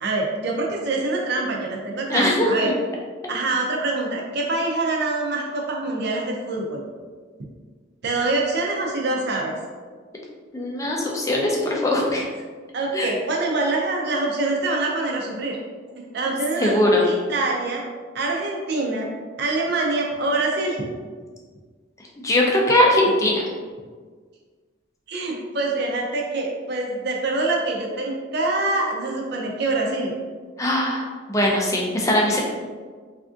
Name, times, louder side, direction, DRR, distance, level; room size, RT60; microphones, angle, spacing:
voice 1, 0.0-2.7 3.3-6.8 8.0-9.5 12.7-15.6 15.9-16.8 17.0-17.8 18.1-19.1 19.4-20.8 25.1-30.1, right 2 dB, 55° right, -1 dB, 0.5 m, -25 dB
voice 2, 2.1-2.7 10.5-12.2 12.9-13.1 16.6-17.1 22.2-23.4 30.6-31.0 31.3-32.4, left 1 dB, 15° left, -2 dB, 0.4 m, -20 dB
3.4 x 2.5 x 2.4 m, 1.5 s
head